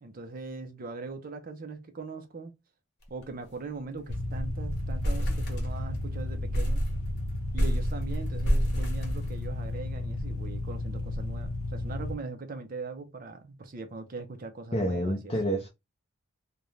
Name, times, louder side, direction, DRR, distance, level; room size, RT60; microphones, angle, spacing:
voice 1, 0.0-2.5 3.1-6.9 7.5-15.3, right 3 dB, 40° right, 0.4 m, -40 dB
sound 1, 3.0-3.2 3.5-3.6 3.9-4.3 4.7-6.1 6.5-9.8, equal, 50° left, 0.9 m, -30 dB
sound 2, 4.1-12.1, left 1 dB, 75° left, 0.6 m, -33 dB
voice 2, 14.7-15.7, equal, 25° left, 0.5 m, -28 dB
2.5 x 2.2 x 3.0 m
head